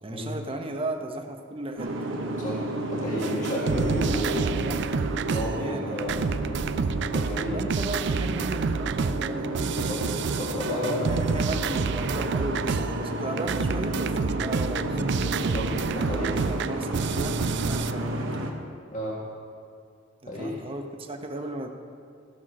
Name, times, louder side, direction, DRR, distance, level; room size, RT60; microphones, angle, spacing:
voice 1, 0.0-2.1 3.7-5.0 5.4-6.0 7.5-9.5 10.6-15.0 15.9-18.5 20.2-21.7, right 1 dB, 30° right, 4 dB, 0.9 m, -36 dB
Boat Water vehicle, 1.8-18.5, right 1 dB, 85° right, 1.2 m, -32 dB
voice 2, 2.9-4.5 5.2-6.2 7.1-7.6 9.8-10.0 10.4-11.1 15.5-16.5 18.9-19.2 20.3-20.6, left 1 dB, 40° left, -6 dB, 1.8 m, -32 dB
sound 1, 3.2-5.7 6.0-13.1 13.4-17.9, right 5 dB, 65° right, 0.4 m, -29 dB
15.5 x 6.0 x 6.2 m, 2.3 s
head